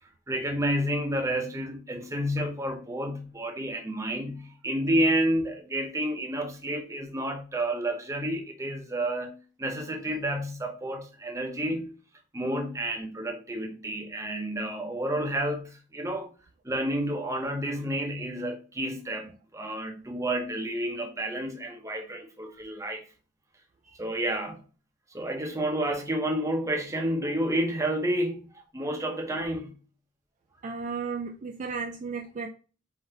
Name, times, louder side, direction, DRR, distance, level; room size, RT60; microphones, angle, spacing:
voice 1, 0.3-11.9 12.3-16.3 16.6-23.0 24.0-24.6 25.1-28.5 28.7-29.8, right 1 dB, 15° right, 0.7 m, -30 dB
voice 2, 30.6-32.5, right 5 dB, 40° right, 0.3 m, -34 dB
4.2 x 3.8 x 2.7 m
head